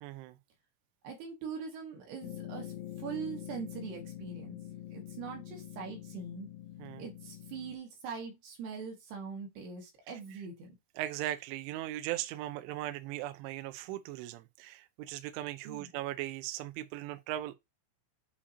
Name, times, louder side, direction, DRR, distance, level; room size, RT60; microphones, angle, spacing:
voice 1, 0.0-0.4 6.8-7.0 11.0-17.6, right 14 dB, 80° right, 2.9 m, -38 dB
voice 2, 1.0-2.7 3.0-4.6 4.9-6.5 7.0-10.8 15.7-15.9, right 6 dB, 65° right, 3.5 m, -42 dB
sound 1, 2.2-7.8, left 12 dB, 70° left, 2.6 m, -45 dB
8.5 x 4.9 x 2.8 m
omnidirectional pair, 5.9 m